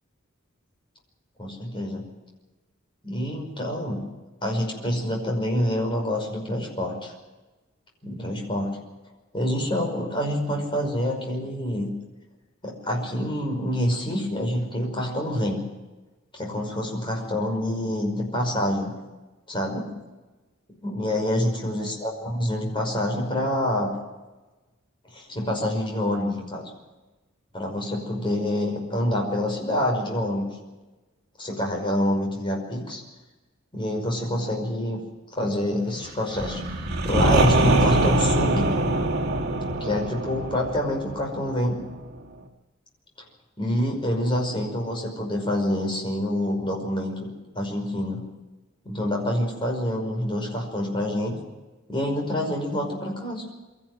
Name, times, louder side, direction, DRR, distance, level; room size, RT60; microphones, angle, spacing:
voice 1, 1.4-2.0 3.0-4.0 4.4-7.1 8.0-8.8 9.3-11.9 12.6-15.6 16.3-18.9 19.5-19.9 20.8-23.9 25.1-26.7 27.5-30.5 31.4-33.0 33.7-35.0 35.4-38.7 39.8-41.8 43.6-47.3 47.6-48.2 48.8-51.4 51.9-53.4, left 1 dB, 25° left, 1 dB, 5.5 m, -27 dB
sound 1, 36.3-42.1, right 1 dB, 50° right, 2.7 m, -23 dB
24.0 x 14.0 x 7.9 m, 1.1 s
head